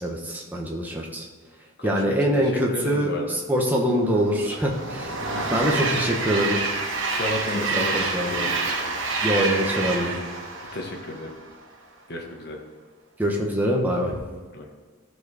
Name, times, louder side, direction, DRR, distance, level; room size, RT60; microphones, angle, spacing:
voice 1, 0.0-1.3 1.8-5.2 5.5-6.6 7.7-8.3 9.2-10.2 13.2-14.2, equal, 10° right, -1 dB, 1.1 m, -24 dB
voice 2, 1.8-3.3 5.3-5.5 7.1-8.6 10.7-11.3 12.1-12.6 14.5-14.7, left 2 dB, 50° left, 0 dB, 1.3 m, -33 dB
Train, 4.0-11.5, right 3 dB, 60° right, 1.2 m, -28 dB
14.0 x 4.8 x 4.9 m, 1.5 s
head